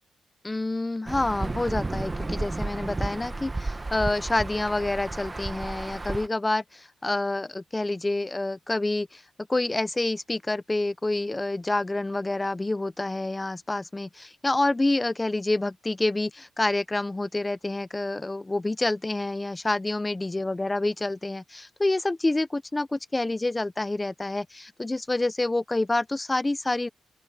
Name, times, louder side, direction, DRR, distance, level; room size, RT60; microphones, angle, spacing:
voice 1, 0.4-9.2 9.5-26.9, left 2 dB, 15° left, 0.5 m, -28 dB
Insect / Thunder / Rain, 1.1-6.3, right 2 dB, 15° right, 1.1 m, -32 dB
open air
wide cardioid pair, 150°, 0 cm